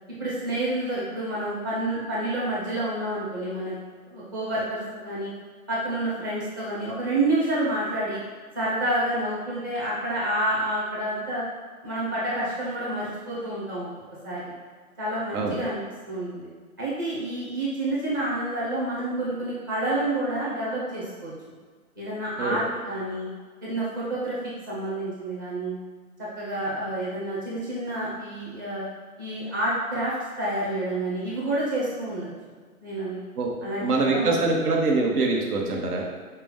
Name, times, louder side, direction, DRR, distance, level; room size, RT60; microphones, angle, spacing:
voice 1, 0.2-3.7 4.1-5.3 5.7-8.2 8.5-11.4 11.8-13.9 14.2-14.5 15.0-16.5 16.8-21.3 22.0-23.3 23.6-25.7 26.3-28.8 29.2-32.3 32.8-33.2 33.6-34.4, right 1 dB, 15° right, -8 dB, 0.5 m, -29 dB
voice 2, 33.8-36.0, right 3 dB, 85° right, 0 dB, 1.1 m, -24 dB
5.8 x 2.2 x 3.6 m, 1.6 s
hypercardioid pair, 160°, 44 cm